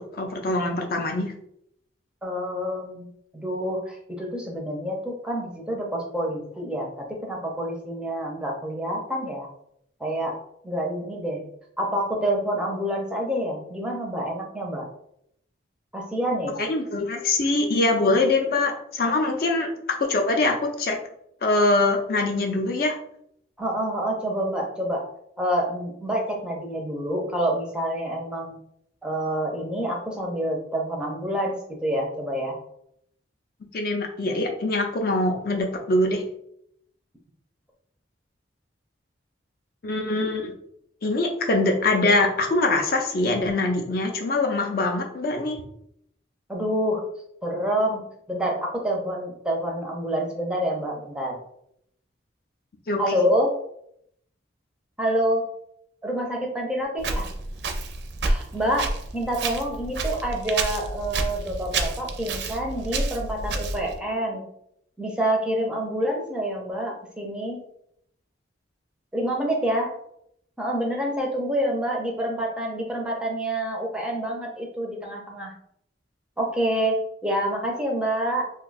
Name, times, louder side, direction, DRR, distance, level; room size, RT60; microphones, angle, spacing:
voice 1, 0.0-1.3 16.6-19.7 20.1-21.0 21.4-23.0 33.7-36.2 39.8-40.5 41.0-45.6 52.9-53.0, left 2 dB, 50° left, 2 dB, 0.4 m, -23 dB
voice 2, 2.2-3.1 3.3-9.5 10.0-10.4 10.6-11.4 11.8-14.9 15.9-16.6 23.6-25.1 25.4-28.6 29.0-32.6 46.5-47.1 47.4-51.4 53.0-53.6 55.0-55.5 56.0-57.3 58.2-64.5 65.0-67.6 69.1-70.0 70.6-75.5 76.4-78.5, right 1 dB, 5° right, -1 dB, 0.5 m, -27 dB
Walk footsteps, 57.0-64.0, right 3 dB, 60° right, 0.4 m, -29 dB
2.6 x 2.3 x 3.9 m, 0.73 s
head